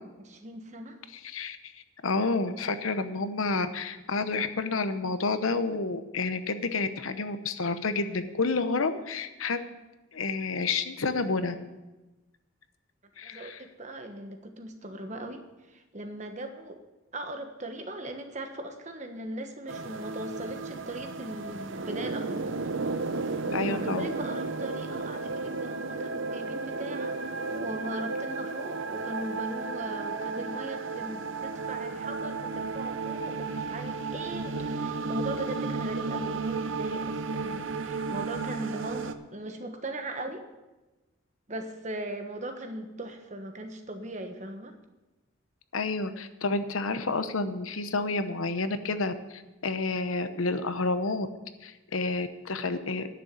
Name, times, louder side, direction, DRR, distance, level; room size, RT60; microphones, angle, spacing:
voice 1, 0.2-1.0 13.2-16.8 17.1-22.5 23.5-40.5 41.5-44.7, right 1 dB, 35° right, 6 dB, 1.2 m, -39 dB
voice 2, 1.1-9.6 10.1-11.5 13.2-13.6 23.5-24.1 45.7-51.3 51.6-53.1, left 3 dB, 85° left, 10 dB, 0.9 m, -30 dB
sound 1, 19.7-39.1, right 4 dB, 70° right, 0.7 m, -33 dB
10.5 x 6.8 x 9.1 m, 1.1 s
head